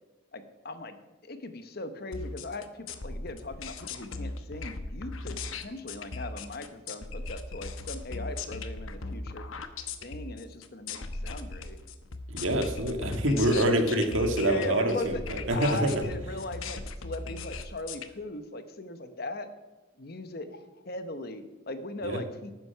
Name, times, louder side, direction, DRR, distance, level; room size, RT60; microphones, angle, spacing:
voice 1, 0.3-1.0 1.2-9.5 10.0-11.8 13.6-14.0 14.4-15.2 15.5-19.5 20.0-22.5, left 2 dB, 45° left, 10 dB, 0.9 m, -39 dB
sound 1, 2.1-18.1, left 3 dB, 75° left, 0.9 m, -38 dB
voice 2, 12.3-15.9 22.0-22.2, right 1 dB, 70° right, 5 dB, 1.7 m, -26 dB
12.0 x 9.5 x 5.7 m, 1.2 s
head